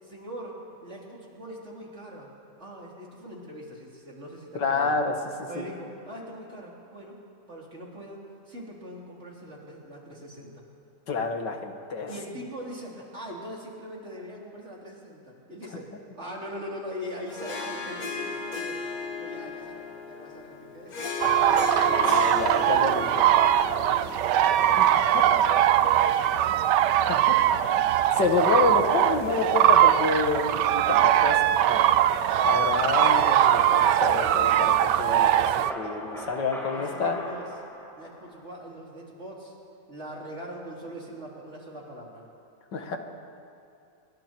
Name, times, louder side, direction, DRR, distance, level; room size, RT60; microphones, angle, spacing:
voice 1, 0.0-2.3 2.6-4.9 5.5-7.2 7.5-10.6 12.1-18.9 19.2-21.5 21.8-22.3 22.6-24.5 25.3-26.9 35.9-36.4 36.7-37.4 38.0-39.6 39.9-42.3, equal, 40° right, -3 dB, 4.0 m, -42 dB
voice 2, 4.6-5.1 5.4-5.6 11.1-12.1 21.7-23.3 24.8-25.4 27.1-27.4 27.8-27.9 28.1-31.4 31.7-32.0 32.4-35.5 35.8-37.2 42.7-43.0, left 4 dB, 80° left, 4 dB, 2.3 m, -28 dB
Harp, 17.3-25.9, left 4 dB, 55° left, 2.4 m, -36 dB
sound 1, 21.2-35.7, right 11 dB, 75° right, 1.3 m, -21 dB
sound 2, 32.6-38.4, right 1 dB, ahead, 6.4 m, -40 dB
27.5 x 24.0 x 4.6 m, 2.5 s
omnidirectional pair, 1.9 m